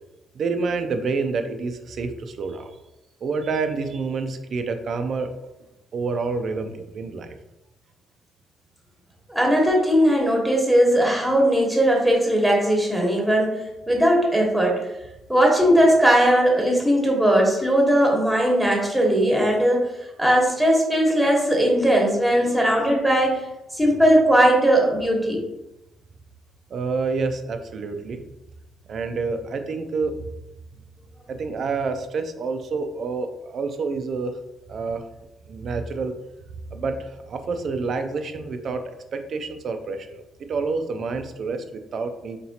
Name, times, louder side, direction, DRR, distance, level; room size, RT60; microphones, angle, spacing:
voice 1, 0.3-2.8 3.2-5.3 5.9-7.4 26.7-28.2 28.9-30.1 31.3-34.3 34.7-35.0 35.5-36.1 36.7-40.2 40.5-42.4, right 4 dB, 55° right, 7 dB, 0.4 m, -28 dB
voice 2, 9.3-14.8 15.3-19.9 20.2-23.4 23.7-25.4, equal, ahead, -1 dB, 1.2 m, -19 dB
4.1 x 3.0 x 2.8 m, 0.93 s
cardioid pair, 90°, 0 cm